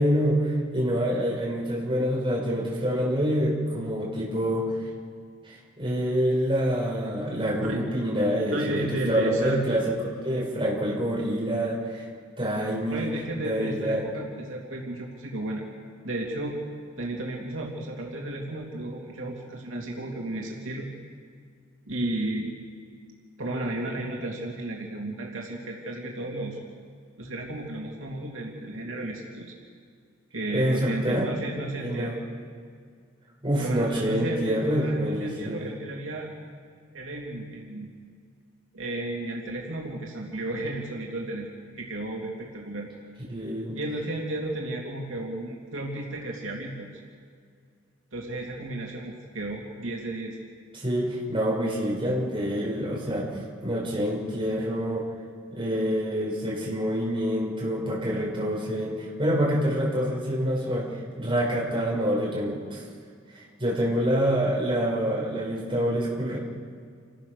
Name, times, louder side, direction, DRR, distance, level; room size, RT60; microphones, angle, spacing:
voice 1, 0.0-4.8 5.4-12.1 12.4-13.1 13.4-14.1 30.5-31.3 31.7-32.2 33.4-35.7 43.3-43.8 50.7-55.0 55.5-62.8 63.3-66.4, equal, 25° right, -4 dB, 5.5 m, -26 dB
voice 2, 8.5-9.6 12.9-15.6 16.0-16.6 17.0-20.9 21.9-22.5 23.4-26.6 27.2-29.5 30.3-32.1 33.6-36.3 36.9-37.9 38.7-42.9 43.7-46.9 48.1-50.4, right 2 dB, 80° right, -2 dB, 2.9 m, -33 dB
29.0 x 16.0 x 6.6 m, 2.1 s
head